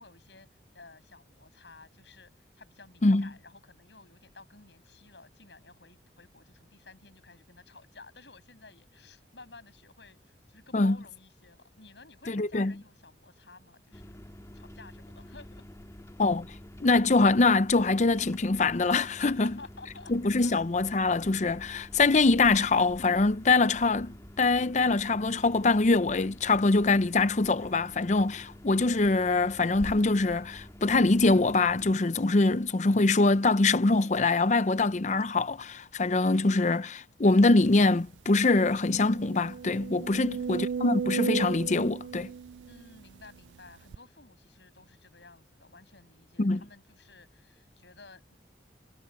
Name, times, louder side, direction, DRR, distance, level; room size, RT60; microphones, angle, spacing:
voice 1, 0.0-14.2 14.5-15.6 19.2-20.6 40.1-40.7 42.6-48.4, left 3 dB, 80° left, 8.0 m, -53 dB
voice 2, 12.3-12.7 16.2-16.5 16.8-19.5 20.1-42.3 46.4-46.6, left 3 dB, 40° left, 0.6 m, -24 dB
sound 1, 13.9-31.9, equal, 15° left, 2.0 m, -48 dB
sound 2, 37.9-38.0 38.4-38.5 39.0-43.3 43.9-44.0, right 6 dB, 90° right, 0.4 m, -34 dB
head